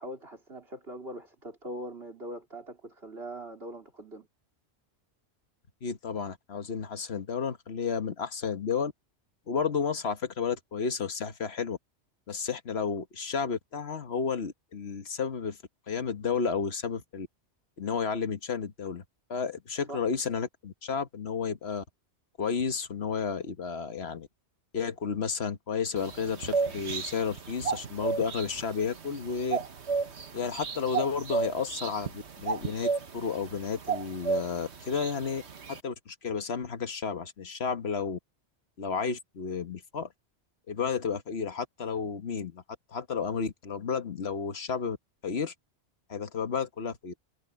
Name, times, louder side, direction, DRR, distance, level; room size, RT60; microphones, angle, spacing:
voice 1, 0.0-4.3 19.9-20.1, right 1 dB, 60° right, 3.9 m, -41 dB
voice 2, 5.8-8.9 9.5-11.8 12.3-15.6 15.9-17.3 17.8-19.0 19.3-21.8 22.4-24.3 24.7-29.6 30.3-35.4 35.7-38.2 38.8-40.1 40.7-42.6 42.9-45.0 45.2-45.5 46.1-47.1, left 6 dB, 65° left, 1.6 m, -32 dB
sound 1, 26.0-35.8, right 5 dB, 75° right, 1.6 m, -34 dB
omnidirectional pair, 1.1 m